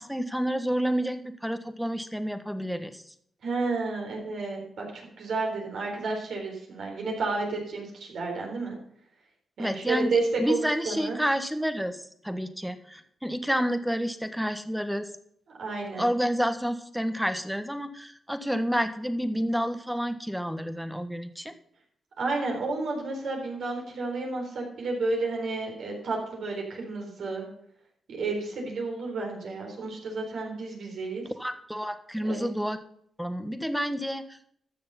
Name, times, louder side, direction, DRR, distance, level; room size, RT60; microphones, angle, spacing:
voice 1, 0.0-3.0 9.6-15.1 16.0-21.5 31.4-32.8 33.2-34.4, equal, ahead, 9 dB, 1.3 m, -29 dB
voice 2, 3.4-8.7 9.6-11.2 15.6-16.1 22.2-27.5 28.1-31.2 32.2-32.4, right 3 dB, 75° right, 0 dB, 4.1 m, -31 dB
13.0 x 6.8 x 5.6 m, 0.69 s
supercardioid pair, 55°, 0 cm